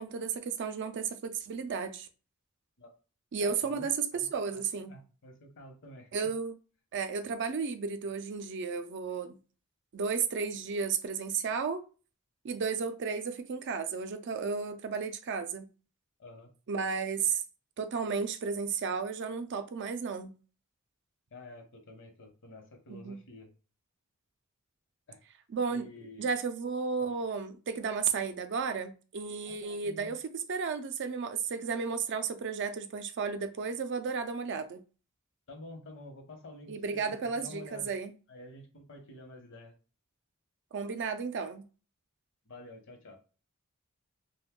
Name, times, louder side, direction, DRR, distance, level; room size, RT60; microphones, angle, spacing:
voice 1, 0.0-2.1 3.3-4.9 6.1-6.6 6.9-9.4 9.9-11.8 12.4-15.7 16.7-17.4 17.8-20.3 22.9-23.2 25.5-25.9 26.2-30.2 30.5-34.8 36.7-38.1 40.7-41.6, right 5 dB, 55° right, 0.4 m, -33 dB
voice 2, 3.4-3.9 4.1-4.6 4.9-6.1 16.2-16.5 21.3-23.5 25.1-25.2 25.7-26.3 27.0-27.2 29.4-30.2 35.5-37.9 38.3-39.7 42.4-43.2, left 1 dB, 60° left, 0.9 m, -49 dB
2.6 x 2.2 x 3.6 m
head